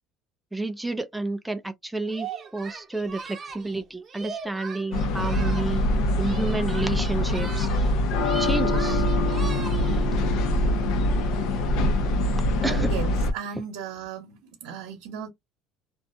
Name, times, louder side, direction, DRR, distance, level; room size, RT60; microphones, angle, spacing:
voice 1, 0.5-5.8 6.2-7.7 8.4-9.0 12.6-12.9, right 2 dB, 5° right, 0.3 m, -30 dB
Singing, 2.1-5.9 6.2-7.9 8.2-10.1, right 5 dB, 30° right, 0.7 m, -40 dB
sound 1, 4.9-13.3, left 1 dB, 65° left, 0.6 m, -24 dB
voice 2, 12.6-15.3, right 7 dB, 80° right, 0.9 m, -36 dB
2.4 x 2.2 x 2.6 m
cardioid pair, 120°, 0 cm